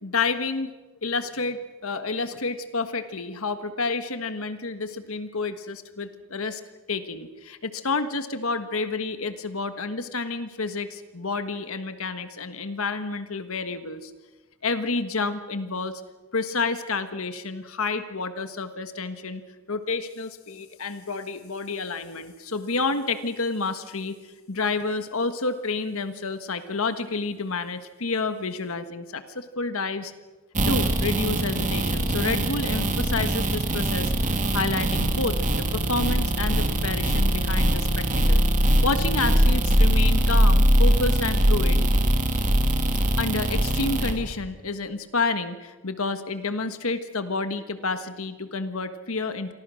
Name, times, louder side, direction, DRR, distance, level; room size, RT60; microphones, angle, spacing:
voice 1, 0.0-0.7 1.0-6.6 6.9-14.1 14.6-16.0 16.3-19.4 19.7-30.1 30.7-41.8 43.2-49.5, left 3 dB, 75° left, 10 dB, 1.5 m, -29 dB
sound 1, 30.6-44.1, right 1 dB, 35° right, 2.5 m, -22 dB
28.5 x 24.0 x 6.4 m, 1.2 s
head